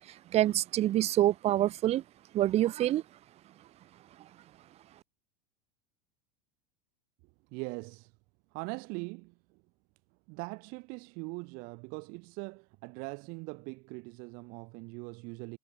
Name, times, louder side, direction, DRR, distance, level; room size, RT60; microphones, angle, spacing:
voice 1, 0.3-2.0 2.3-3.0, right 13 dB, 35° right, 1.0 m, -26 dB
voice 2, 7.5-8.1 8.5-9.6 10.3-15.6, right 30 dB, 50° right, 7.0 m, -41 dB
figure-of-eight pair, 85°, 19 cm